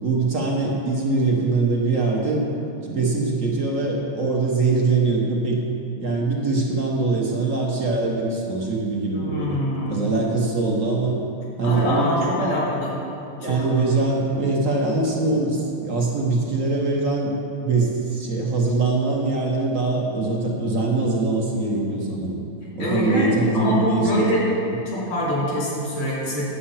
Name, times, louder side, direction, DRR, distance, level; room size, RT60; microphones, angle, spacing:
voice 1, 0.0-2.5 2.8-5.6 6.0-9.6 9.9-11.2 11.6-12.6 13.4-17.3 17.6-22.4 22.8-24.2, right 3 dB, 45° right, -1 dB, 1.3 m, -22 dB
voice 2, 9.1-10.1 11.6-12.9 13.4-13.6 22.8-24.4 24.9-26.4, equal, 85° left, -6 dB, 3.8 m, -24 dB
10.0 x 7.8 x 5.7 m, 2.6 s
omnidirectional pair, 2.4 m